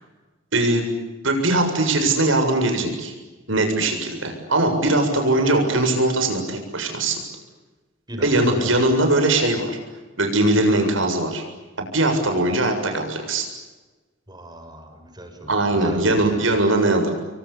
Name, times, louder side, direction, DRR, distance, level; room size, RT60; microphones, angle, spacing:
voice 1, 0.5-0.8 1.2-3.1 3.5-7.2 8.2-9.8 10.2-11.4 11.9-13.5 15.5-17.1, right 2 dB, 80° right, 4 dB, 7.4 m, -20 dB
voice 2, 8.1-8.9 14.3-16.3, equal, 20° right, 6 dB, 6.3 m, -37 dB
29.0 x 23.5 x 8.7 m, 1.2 s
head